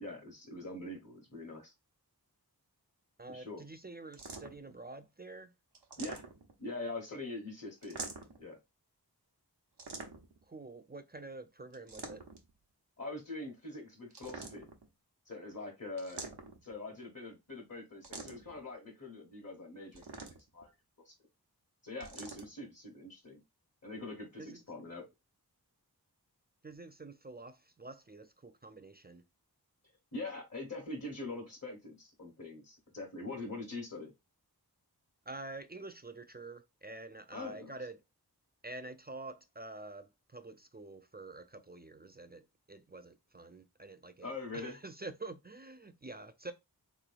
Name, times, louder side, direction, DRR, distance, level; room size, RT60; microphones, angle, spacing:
voice 1, 0.0-1.7 3.3-3.6 6.0-6.2 6.6-8.0 8.4-8.6 13.0-14.7 15.2-16.2 16.6-20.0 20.5-20.7 21.0-21.1 21.8-23.4 23.8-25.1 30.1-34.1 37.3-37.7 44.2-44.8, left 2 dB, 40° left, 1.3 m, -43 dB
voice 2, 3.2-5.5 6.0-6.1 10.5-12.2 24.4-24.6 26.6-29.2 35.3-38.0 38.6-46.5, right 2 dB, 25° right, 0.4 m, -47 dB
sound 1, 4.1-4.7 5.7-6.6 7.8-8.4 9.8-10.4 11.7-12.5 14.1-14.9 16.0-16.7 18.0-18.6 19.9-20.6 22.0-22.5, right 3 dB, 85° right, 0.9 m, -46 dB
3.7 x 3.0 x 2.4 m
wide cardioid pair, 40°, 39 cm